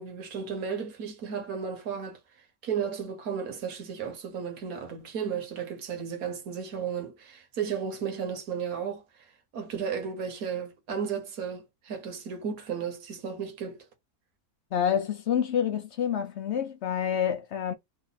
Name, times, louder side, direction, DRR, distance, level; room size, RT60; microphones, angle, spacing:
voice 1, 0.0-2.2 2.6-9.0 9.5-13.9, right 7 dB, 70° right, 1.4 m, -34 dB
voice 2, 14.7-17.7, left 8 dB, 65° left, 0.7 m, -28 dB
3.3 x 2.4 x 3.9 m
omnidirectional pair, 1.6 m